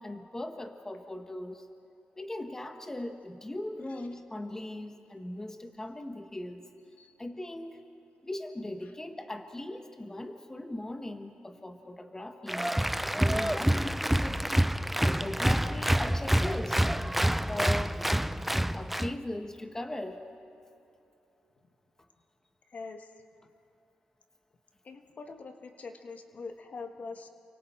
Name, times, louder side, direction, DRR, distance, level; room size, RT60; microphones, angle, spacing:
voice 1, 0.0-1.7 2.2-6.6 7.2-7.9 8.2-12.7 13.1-14.7 15.0-16.8 17.5-18.0 18.7-20.2, left 1 dB, 15° left, 6 dB, 1.3 m, -39 dB
Applause, 12.5-19.1, right 1 dB, 5° right, 0.4 m, -27 dB
voice 2, 22.7-23.1 24.8-27.3, left 4 dB, 55° left, 5 dB, 1.5 m, -43 dB
29.0 x 23.5 x 4.5 m, 2.8 s
cardioid pair, 80°, 3 cm